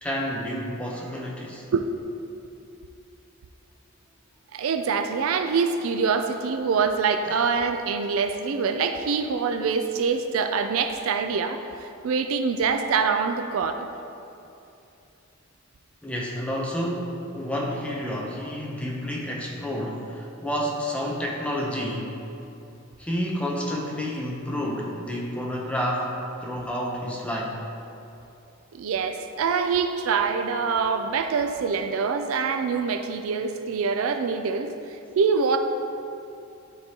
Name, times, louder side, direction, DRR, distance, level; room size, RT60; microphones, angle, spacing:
voice 1, 0.0-1.6 7.2-7.4 16.0-22.3 23.0-27.6, equal, 5° left, -3 dB, 0.8 m, -30 dB
voice 2, 4.5-13.9 28.7-34.7 35.2-35.6, right 5 dB, 75° right, 7 dB, 0.4 m, -25 dB
11.0 x 3.8 x 2.9 m, 2.7 s
head